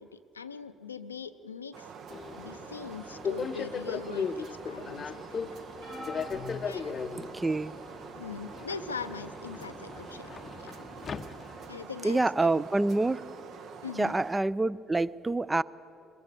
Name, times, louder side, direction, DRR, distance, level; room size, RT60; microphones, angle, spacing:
voice 1, 0.0-1.9 2.3-5.5 6.6-7.0 8.2-10.3 10.6-10.8 11.7-12.6 13.8-14.2, left 5 dB, 85° left, 11 dB, 0.5 m, -41 dB
sound 1, 1.7-14.4, right 6 dB, 55° right, 0.9 m, -46 dB
Subway metro underground, 2.1-11.9, left 5 dB, 40° left, 0.6 m, -38 dB
sound 2, 5.8-7.6 8.3-8.6 9.9-10.0, left 1 dB, 75° right, 7.4 m, -44 dB
voice 2, 7.2-7.7 12.0-13.2 14.0-15.6, right 2 dB, 20° right, 19 dB, 0.5 m, -27 dB
22.5 x 21.5 x 6.7 m, 3.0 s
figure-of-eight pair, 50°, 0 cm